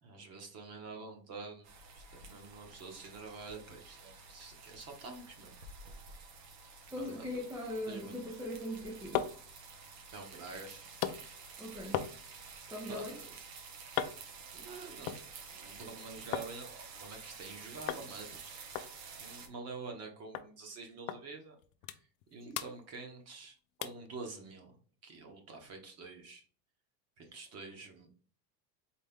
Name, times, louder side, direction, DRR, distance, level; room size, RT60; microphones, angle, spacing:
voice 1, 0.0-5.5 7.0-7.4 7.9-8.3 10.1-10.8 12.9-13.3 14.5-15.2 15.5-18.6 19.2-21.5 21.9-24.7 25.0-26.4 27.2-28.1, right 3 dB, 30° right, 1.2 m, -47 dB
sound 1, 1.6-19.5, right 5 dB, 85° right, 1.5 m, -51 dB
voice 2, 6.9-9.2 11.6-12.0 12.7-13.2 22.5-22.6, left 1 dB, 5° right, 0.6 m, -40 dB
sound 2, 8.9-16.5 16.8-17.5 17.9-18.1 18.3-18.4 18.7-20.1 20.3-20.5 21.1-21.2 21.6-22.2 22.5-23.4 23.8-24.1 24.6-24.7, left 11 dB, 60° left, 0.6 m, -40 dB
4.3 x 3.4 x 3.6 m
supercardioid pair, 150°, 49 cm